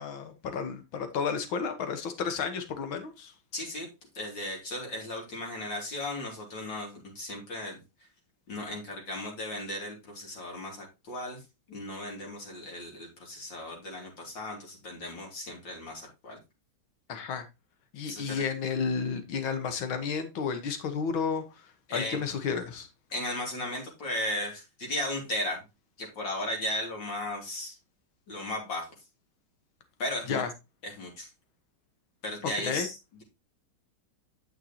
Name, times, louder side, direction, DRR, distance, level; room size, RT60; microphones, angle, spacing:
voice 1, 0.0-3.3 17.1-17.5 17.9-21.7 21.9-22.9 30.3-30.5 32.6-32.9, left 6 dB, 85° left, 8 dB, 2.0 m, -32 dB
voice 2, 3.5-3.9 4.2-7.8 8.5-11.4 11.7-16.4 18.1-18.4 21.9-22.2 23.1-25.6 26.0-27.8 28.3-28.9 30.0-30.4 30.8-31.3 32.2-33.2, left 1 dB, 65° left, 0 dB, 3.6 m, -36 dB
8.9 x 7.4 x 2.8 m, 0.25 s
omnidirectional pair, 2.1 m